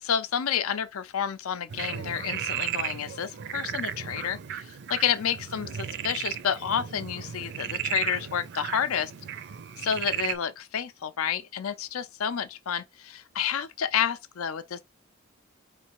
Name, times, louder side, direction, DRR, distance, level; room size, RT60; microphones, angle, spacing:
voice 1, 0.0-9.1 9.8-14.8, left 8 dB, 85° left, 0.5 m, -30 dB
Frog, 1.7-10.4, right 9 dB, 55° right, 0.5 m, -35 dB
4.4 x 3.2 x 3.0 m
head